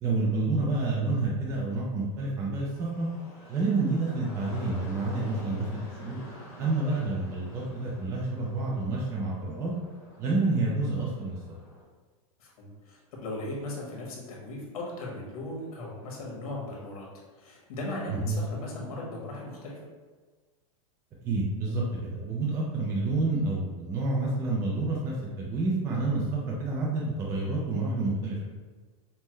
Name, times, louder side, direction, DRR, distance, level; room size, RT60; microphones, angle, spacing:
voice 1, 0.0-3.1 3.5-6.2 6.6-9.7 10.2-11.4 18.1-18.4 21.2-28.5, right 3 dB, 15° right, -4 dB, 0.3 m, -29 dB
sound 1, 2.6-11.8, left 2 dB, 15° left, 1.2 m, -48 dB
voice 2, 12.4-17.1 17.3-19.8, left 2 dB, 75° left, -3 dB, 1.4 m, -38 dB
5.4 x 2.1 x 3.1 m, 1.4 s
supercardioid pair, 170°, 19 cm